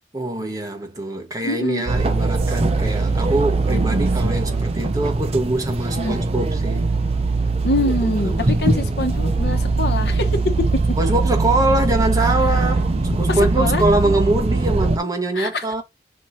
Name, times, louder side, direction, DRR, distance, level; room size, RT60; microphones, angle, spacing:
voice 1, 0.1-6.9 7.8-9.0 11.0-15.8, right 2 dB, 20° right, 1.3 m, -23 dB
voice 2, 1.4-1.8 6.0-6.2 7.6-8.3 8.6-10.5 13.3-13.8 15.3-15.7, left 2 dB, 65° left, 1.0 m, -24 dB
sound 1, 1.9-15.0, right 3 dB, 35° right, 0.7 m, -21 dB
6.0 x 3.2 x 2.7 m
head